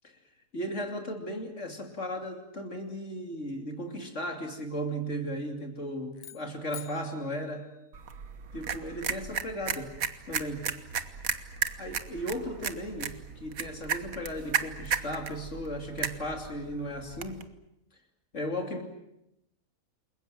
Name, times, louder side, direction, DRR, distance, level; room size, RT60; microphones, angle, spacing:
voice 1, 0.5-7.7 8.5-10.0 10.3-10.7 11.8-17.4 18.3-18.8, equal, 60° left, 4 dB, 3.2 m, -36 dB
sound 1, 6.1-8.5, left 9 dB, 75° left, 1.6 m, -49 dB
sound 2, 7.9-17.4, right 7 dB, 80° right, 1.7 m, -35 dB
28.5 x 22.0 x 7.7 m, 0.85 s
omnidirectional pair, 1.5 m